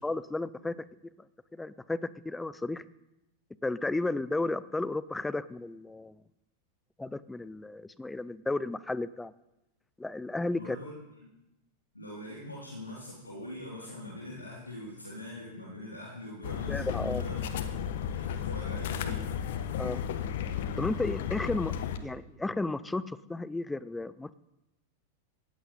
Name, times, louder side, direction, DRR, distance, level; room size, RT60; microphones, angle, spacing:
voice 1, 0.0-0.7 1.5-2.0 2.2-2.8 3.6-6.2 7.0-9.3 10.0-10.8 16.7-17.2 19.8-20.0 20.8-21.7 22.0-24.3, left 2 dB, 10° left, 18 dB, 0.6 m, -33 dB
voice 2, 10.5-10.9 11.2-11.3 11.9-17.6 18.0-19.2, left 1 dB, 85° left, -5 dB, 3.7 m, -43 dB
sound 1, 16.4-22.0, left 8 dB, 55° left, 1.3 m, -33 dB
18.5 x 15.0 x 4.2 m, 0.92 s
figure-of-eight pair, 90°, 0 cm